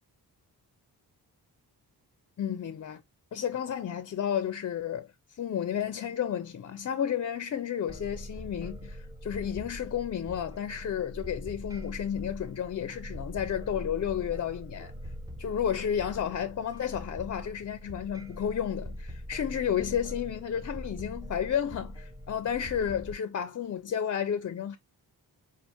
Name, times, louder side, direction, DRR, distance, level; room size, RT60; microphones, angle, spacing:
voice 1, 2.4-3.0 3.3-14.9 15.4-24.8, left 9 dB, 45° left, 0.4 m, -32 dB
sound 1, 7.9-23.1, equal, 10° right, 0.6 m, -42 dB
5.5 x 2.5 x 2.8 m
wide cardioid pair, 100°, 39 cm